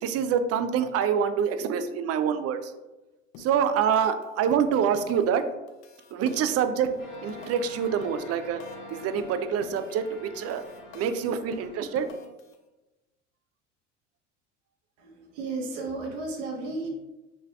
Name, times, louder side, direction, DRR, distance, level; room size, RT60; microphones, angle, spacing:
voice 1, 0.0-2.7 3.4-5.5 6.1-6.9 7.2-8.6 8.9-10.7 10.9-12.1, right 7 dB, 40° right, 10 dB, 0.5 m, -26 dB
sound 1, 3.3-3.6 3.9-4.2 4.5-5.4 5.7-8.9 9.2-10.1 10.3-12.5, left 7 dB, 65° left, 0.7 m, -46 dB
sound 2, 7.0-12.1, left 2 dB, 85° left, 1.2 m, -46 dB
voice 2, 15.0-16.9, right 3 dB, 75° right, 0 dB, 1.2 m, -34 dB
5.9 x 3.2 x 2.3 m, 1.1 s
hypercardioid pair, 80°, 37 cm